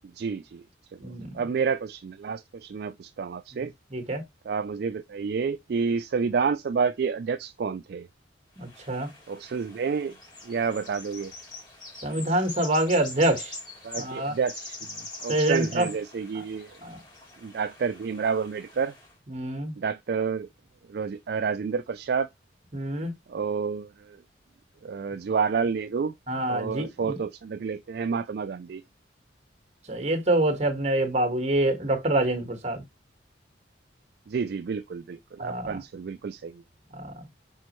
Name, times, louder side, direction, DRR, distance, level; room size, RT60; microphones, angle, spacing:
voice 1, 0.0-0.6 0.9-1.0 1.3-3.7 4.4-8.1 9.3-10.2 10.4-11.3 13.8-16.7 17.4-18.9 19.8-20.5 20.9-22.3 23.3-24.2 24.8-26.1 26.5-28.8 34.3-36.6, right 5 dB, 55° right, 0.3 m, -29 dB
voice 2, 1.0-1.4 3.5-4.2 8.6-9.1 12.0-13.5 14.0-14.3 15.3-15.9 16.8-17.0 19.3-19.8 22.7-23.1 26.3-27.2 29.9-32.8 35.4-35.8 36.9-37.3, right 1 dB, 35° right, 1.6 m, -26 dB
sound 1, 8.6-19.1, left 2 dB, 25° left, 3.0 m, -43 dB
6.2 x 5.2 x 3.0 m
head